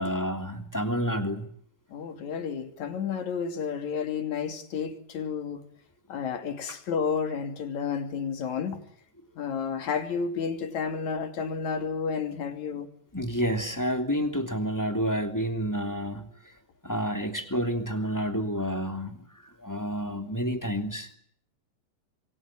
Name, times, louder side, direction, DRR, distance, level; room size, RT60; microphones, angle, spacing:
voice 1, 0.0-1.5 13.1-16.3 16.8-19.3 19.6-21.1, equal, 5° left, 2.6 m, -29 dB
voice 2, 1.9-5.6 6.1-8.8 9.4-12.9, left 6 dB, 55° left, 4.0 m, -31 dB
27.5 x 23.5 x 8.9 m
omnidirectional pair, 4.0 m